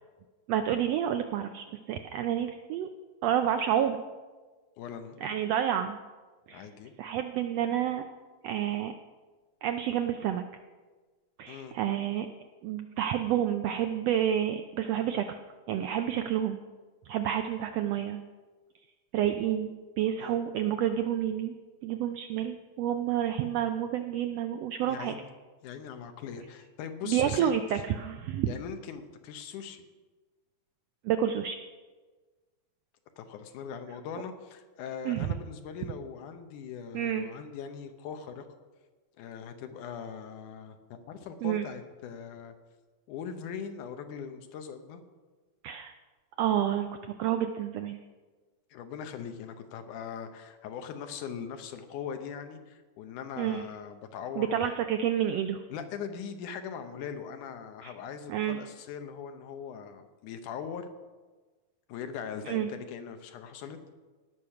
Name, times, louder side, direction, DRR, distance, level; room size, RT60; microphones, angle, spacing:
voice 1, 0.5-2.9 3.2-4.0 5.2-6.0 6.5-6.7 7.0-8.0 8.4-8.9 9.6-10.4 11.4-12.3 12.6-15.4 15.7-16.6 17.1-18.2 19.1-21.5 21.8-25.1 27.0-28.5 31.0-31.6 35.0-35.3 36.9-37.3 41.4-41.7 45.6-45.9 46.4-46.9 47.2-48.0 53.4-53.6 54.4-55.6 57.8-57.9 58.3-58.6 62.4-62.7, right 10 dB, 85° right, 7 dB, 1.4 m, -29 dB
voice 2, 4.8-5.2 6.5-6.9 11.5-11.8 20.2-20.4 24.8-25.3 25.6-27.8 28.5-29.9 33.2-38.5 39.2-42.6 43.1-45.0 48.7-54.8 55.7-60.9 61.9-63.8, left 7 dB, 85° left, 7 dB, 2.5 m, -40 dB
17.5 x 6.4 x 5.7 m, 1.3 s
omnidirectional pair, 3.5 m